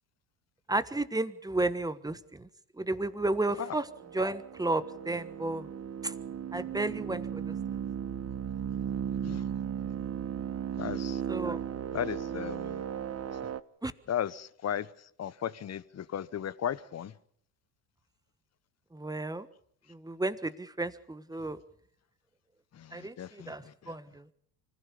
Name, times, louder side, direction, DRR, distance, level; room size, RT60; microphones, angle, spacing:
voice 1, 0.7-2.5 2.8-3.9 4.1-5.7 6.0-6.1 6.5-7.6 11.3-11.6 13.8-13.9 18.9-19.5 19.9-21.6 22.9-24.2, right 2 dB, 10° right, 1.3 m, -32 dB
sound 1, 3.5-13.6, right 8 dB, 30° right, 1.1 m, -36 dB
voice 2, 10.8-11.2 11.9-12.8 14.1-14.9 15.2-17.1 22.8-23.5, left 9 dB, 35° left, 1.1 m, -35 dB
25.0 x 15.5 x 7.1 m
hypercardioid pair, 75°, 47 cm